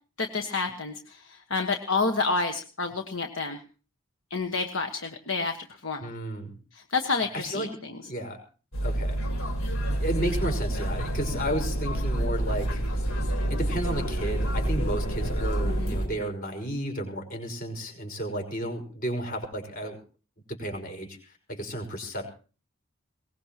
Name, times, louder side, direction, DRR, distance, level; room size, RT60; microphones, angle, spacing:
voice 1, 0.2-3.6 4.3-6.1 6.7-7.9 15.6-16.0, left 4 dB, 65° left, 5 dB, 1.4 m, -29 dB
voice 2, 6.0-6.5 7.3-7.7 8.0-8.4 8.8-9.2 9.9-12.8 13.5-20.0 20.5-22.3, right 1 dB, 40° left, 3 dB, 5.3 m, -33 dB
sound 1, 8.7-16.1, right 1 dB, 85° left, 4.3 m, -28 dB
22.5 x 19.5 x 3.0 m, 0.38 s
head